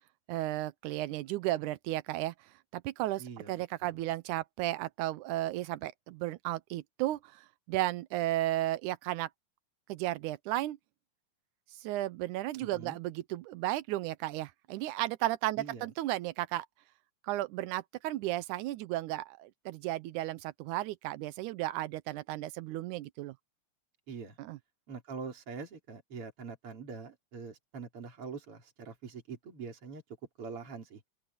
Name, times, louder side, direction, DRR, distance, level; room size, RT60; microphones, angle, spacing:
voice 1, 0.3-2.3 2.7-9.3 9.9-10.8 11.8-16.7 17.2-23.4 24.4-24.6, right 16 dB, 90° right, 2.2 m, -34 dB
voice 2, 3.2-3.9 12.6-13.0 15.6-15.9 24.1-24.4 24.9-30.0 30.4-31.0, right 5 dB, 45° right, 4.7 m, -44 dB
open air
omnidirectional pair, 3.4 m